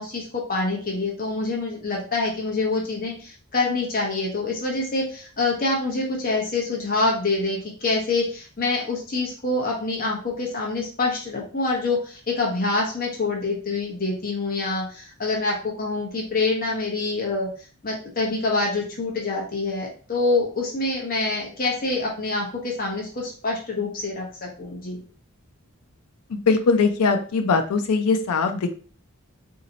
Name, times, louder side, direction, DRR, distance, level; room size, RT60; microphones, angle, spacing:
voice 1, 0.0-17.5 17.8-25.0, left 3 dB, 40° left, -2 dB, 0.9 m, -26 dB
voice 2, 26.3-28.7, left 4 dB, 85° left, 6 dB, 0.4 m, -21 dB
4.0 x 2.7 x 2.7 m, 0.40 s
head